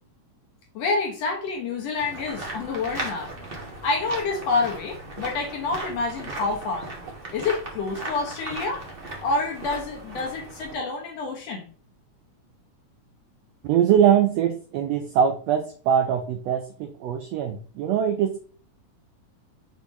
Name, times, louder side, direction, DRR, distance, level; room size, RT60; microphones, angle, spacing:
voice 1, 0.8-3.5 3.8-6.9 7.3-8.8 9.2-11.6, left 3 dB, 65° left, 1.8 m, -28 dB
sound 1, 1.9-10.7, right 2 dB, 45° right, 0.6 m, -37 dB
voice 2, 13.6-18.4, right 9 dB, 85° right, 1.4 m, -22 dB
6.9 x 4.9 x 3.1 m
omnidirectional pair, 3.7 m